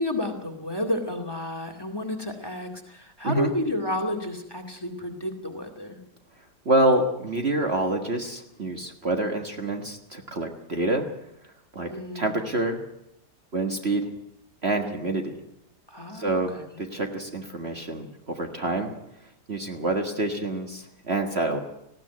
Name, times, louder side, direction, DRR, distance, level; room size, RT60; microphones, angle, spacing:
voice 1, 0.0-6.0 11.9-12.5 15.9-16.7, left 1 dB, 15° left, 7 dB, 2.3 m, -31 dB
voice 2, 6.7-11.1 11.7-11.9 12.1-12.8 13.5-14.0 14.6-15.4 16.1-18.9 19.5-21.6, right 2 dB, 40° right, 4 dB, 1.8 m, -27 dB
19.5 x 15.5 x 9.3 m, 0.81 s
omnidirectional pair, 1.8 m